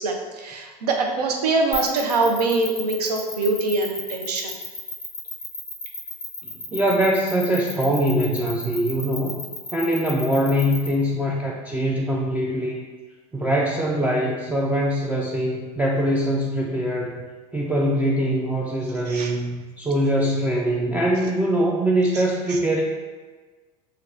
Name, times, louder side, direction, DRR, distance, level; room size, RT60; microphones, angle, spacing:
voice 1, 0.0-4.5 19.1-19.3 22.5-22.6, right 3 dB, 80° right, 2 dB, 0.6 m, -23 dB
sound 1, 1.7-10.9, left 4 dB, 10° left, 1.1 m, -33 dB
voice 2, 6.7-9.4 9.7-12.9 13.3-17.3 17.5-22.8, equal, 10° right, -3 dB, 0.3 m, -23 dB
4.5 x 2.4 x 2.5 m, 1.3 s
hypercardioid pair, 90°, 20 cm